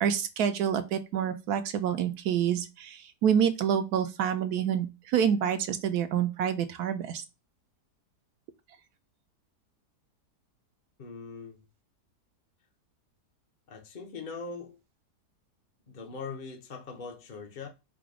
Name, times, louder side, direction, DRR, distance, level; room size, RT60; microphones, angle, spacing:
voice 1, 0.0-7.2, right 8 dB, 75° right, 1.1 m, -27 dB
voice 2, 11.0-11.7 13.7-14.8 15.9-17.7, left 4 dB, 45° left, 0.6 m, -41 dB
4.9 x 2.2 x 4.8 m
omnidirectional pair, 1.7 m